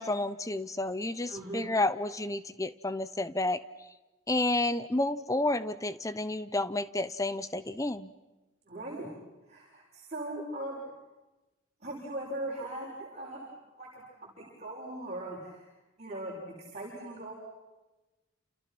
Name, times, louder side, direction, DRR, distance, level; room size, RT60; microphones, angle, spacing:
voice 1, 0.0-3.6 4.3-8.1, left 2 dB, 15° left, 14 dB, 0.9 m, -30 dB
voice 2, 1.3-1.7 8.7-9.1 9.5-10.8 11.8-13.5 13.8-15.7 16.0-17.3, right 1 dB, 30° right, -5 dB, 6.9 m, -39 dB
29.5 x 29.5 x 6.1 m, 1.1 s
head